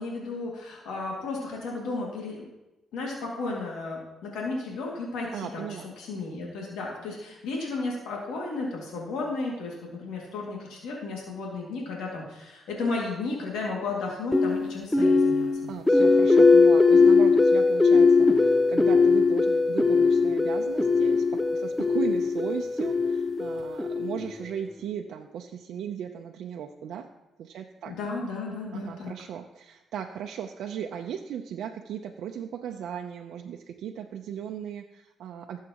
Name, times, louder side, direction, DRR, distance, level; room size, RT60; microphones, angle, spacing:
voice 1, 0.0-2.5 2.9-5.7 6.0-15.5 27.9-29.1, left 3 dB, 85° left, -2 dB, 2.3 m, -33 dB
voice 2, 5.3-5.9 6.3-6.5 15.7-27.1 27.4-27.9 28.7-35.6, right 8 dB, 75° right, 3 dB, 0.6 m, -37 dB
sound 1, 14.3-24.4, left 4 dB, 10° left, 0.6 m, -20 dB
15.5 x 7.4 x 3.0 m, 0.99 s
cardioid pair, 90°, 0 cm